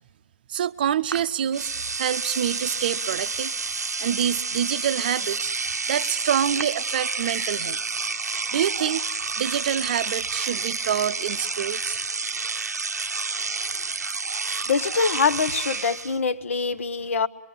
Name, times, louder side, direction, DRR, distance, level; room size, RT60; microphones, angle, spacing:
voice 1, 0.5-3.5 4.0-5.5 5.9-7.8 8.5-9.0 9.4-12.0, right 9 dB, 35° right, 0.7 m, -26 dB
Engine / Domestic sounds home sounds, 1.1-1.2 1.5-16.2, right 4 dB, 85° right, 0.8 m, -29 dB
voice 2, 14.7-17.3, left 5 dB, 55° left, 1.0 m, -24 dB
25.5 x 23.0 x 8.8 m
hypercardioid pair, 155°, 9 cm